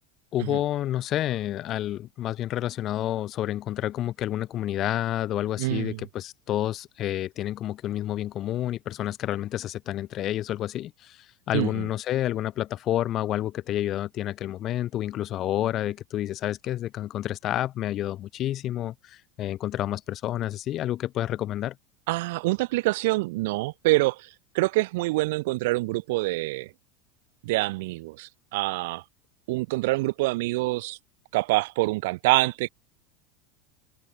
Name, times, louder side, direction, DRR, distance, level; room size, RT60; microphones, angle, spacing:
voice 1, 0.3-21.7, left 13 dB, 40° left, 1.2 m, -29 dB
voice 2, 5.6-6.0 11.5-11.9 22.1-24.3 24.5-26.7 27.4-29.0 29.5-31.0 31.3-32.7, right 21 dB, 75° right, 1.2 m, -26 dB
supercardioid pair, 130°, 0 cm